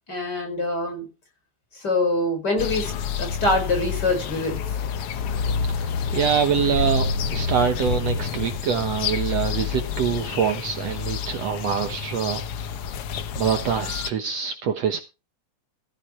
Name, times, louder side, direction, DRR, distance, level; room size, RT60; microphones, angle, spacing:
voice 1, 0.1-1.1 1.7-4.8, left 2 dB, 30° left, 5.2 m, -25 dB
sound 1, 2.6-14.1, left 6 dB, 60° left, 1.7 m, -28 dB
voice 2, 5.8-7.1 7.3-12.4 12.7-12.8 13.4-15.0, right 7 dB, 65° right, 2.0 m, -25 dB
14.5 x 8.1 x 4.4 m
omnidirectional pair, 3.6 m